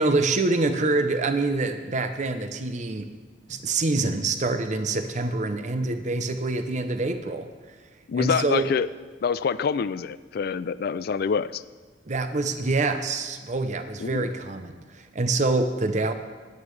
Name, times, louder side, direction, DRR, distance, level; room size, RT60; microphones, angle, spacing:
voice 1, 0.0-3.1 3.5-7.5 8.1-8.7 12.1-16.1, right 3 dB, 45° right, 8 dB, 0.7 m, -26 dB
voice 2, 8.1-8.9 9.2-11.6 14.0-14.3, left 6 dB, 60° left, 16 dB, 0.4 m, -26 dB
19.0 x 8.9 x 3.3 m, 1.4 s
head